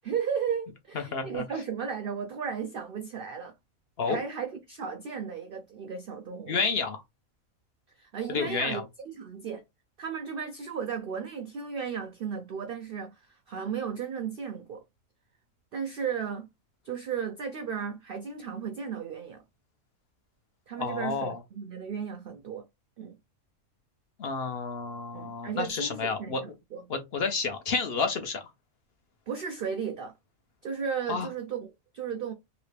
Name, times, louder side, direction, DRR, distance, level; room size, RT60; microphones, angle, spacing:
voice 1, 0.0-3.5 4.1-6.6 8.0-8.8 9.2-9.6 10.0-14.8 15.7-16.5 16.8-19.4 20.7-22.7 23.0-23.2 25.1-26.8 29.3-30.1 30.6-32.3, right 7 dB, 75° right, 0.5 m, -35 dB
voice 2, 0.9-1.4 4.0-4.2 6.5-7.0 8.3-8.8 20.8-21.4 24.2-26.4 26.9-28.4 31.1-31.3, left 4 dB, 55° left, 0.7 m, -30 dB
2.9 x 2.7 x 3.2 m
omnidirectional pair, 1.5 m